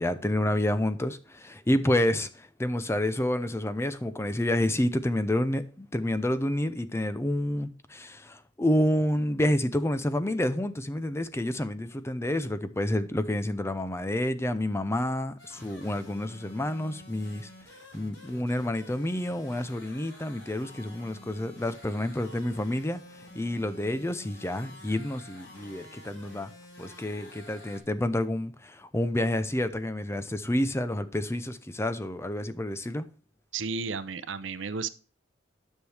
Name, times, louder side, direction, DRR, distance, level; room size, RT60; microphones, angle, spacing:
voice 1, 0.0-17.5 17.9-23.0 23.3-26.5 26.8-33.0, left 1 dB, 15° left, 0.5 m, -29 dB
sound 1, 15.4-27.8, left 1 dB, 80° left, 4.4 m, -50 dB
voice 2, 33.5-34.9, right 5 dB, 70° right, 0.6 m, -33 dB
9.9 x 6.4 x 3.4 m
head